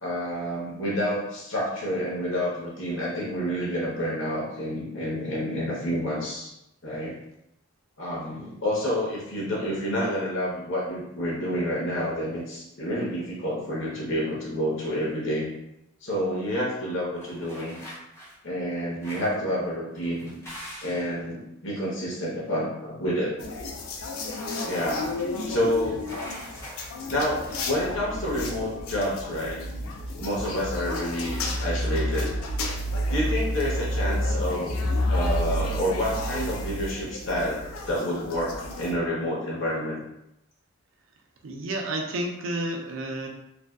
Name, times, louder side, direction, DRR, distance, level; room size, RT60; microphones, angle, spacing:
voice 1, 0.0-6.5 6.8-7.2 8.0-15.5 16.0-17.8 18.4-20.4 20.8-23.3 24.6-25.0 25.5-26.0 27.1-29.6 30.2-32.3 33.1-34.7 35.1-37.6 37.9-40.0, equal, 60° left, -4 dB, 0.8 m, -29 dB
sound 1, 17.2-18.4 19.0-19.5 19.9-21.2 24.3-25.3 26.0-27.7, equal, 15° left, 0.4 m, -44 dB
sound 2, 23.4-38.9, left 1 dB, 85° left, 0.4 m, -30 dB
voice 2, 41.4-43.3, right 1 dB, 65° right, 1 dB, 0.4 m, -30 dB
2.5 x 2.2 x 2.2 m, 0.84 s
head